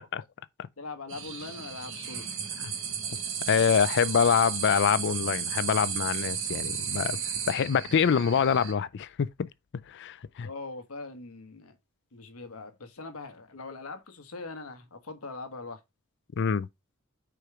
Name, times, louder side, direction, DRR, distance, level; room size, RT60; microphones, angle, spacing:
voice 1, 0.8-2.3 10.4-11.8 12.1-15.8, left 3 dB, 90° left, 1.2 m, -41 dB
sound 1, 1.1-8.7, right 7 dB, 65° right, 1.3 m, -34 dB
voice 2, 3.5-7.2 7.5-9.5 9.9-10.5 16.4-16.7, left 7 dB, 55° left, 0.4 m, -25 dB
5.1 x 4.6 x 4.7 m
head